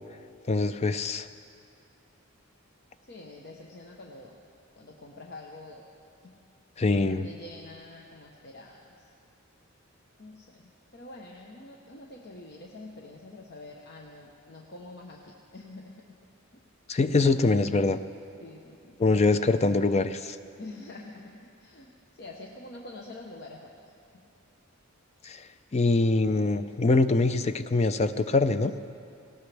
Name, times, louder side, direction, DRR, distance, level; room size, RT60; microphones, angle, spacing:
voice 1, 0.5-1.3 6.8-7.3 16.9-18.0 19.0-20.4 25.2-25.5 25.7-28.7, left 3 dB, 30° left, 11 dB, 0.4 m, -24 dB
voice 2, 3.1-4.3 4.8-5.9 6.2-6.3 7.0-9.1 10.2-15.9 18.4-19.0 20.6-21.9 22.2-23.7, left 2 dB, 50° left, 0 dB, 0.9 m, -46 dB
18.5 x 18.5 x 3.4 m, 2.5 s
head